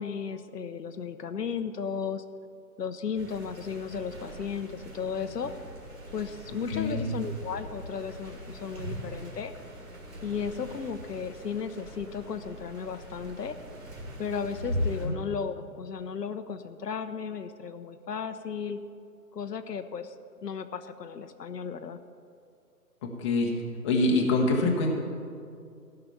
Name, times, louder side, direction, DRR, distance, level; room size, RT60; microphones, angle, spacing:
voice 1, 0.0-2.2 2.8-5.5 6.1-9.5 10.2-13.6 14.2-18.8 19.3-20.1 20.4-22.0, left 6 dB, 80° left, 9 dB, 0.8 m, -35 dB
sound 1, 3.1-15.1, equal, 60° right, 3.4 m, -40 dB
voice 2, 6.7-7.0 15.0-15.1 23.0-23.5 23.8-24.9, left 2 dB, 20° left, 0 dB, 0.9 m, -25 dB
15.5 x 5.8 x 6.9 m, 2.4 s
hypercardioid pair, 150°, 48 cm